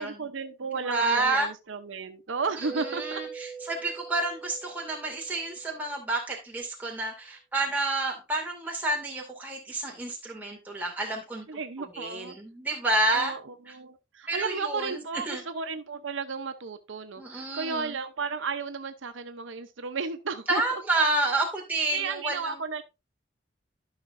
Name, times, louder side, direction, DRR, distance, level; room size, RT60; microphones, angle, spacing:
voice 1, 0.0-3.2 11.5-12.3 13.1-21.1 21.9-22.8, right 5 dB, 85° right, 0.8 m, -34 dB
voice 2, 0.8-1.5 2.6-11.5 11.9-13.3 14.3-15.0 15.3-15.4 17.2-18.0 20.5-22.5, right 2 dB, 10° right, 2.3 m, -29 dB
Mallet percussion, 2.6-6.1, right 6 dB, 15° left, 1.5 m, -43 dB
13.0 x 5.8 x 2.6 m
head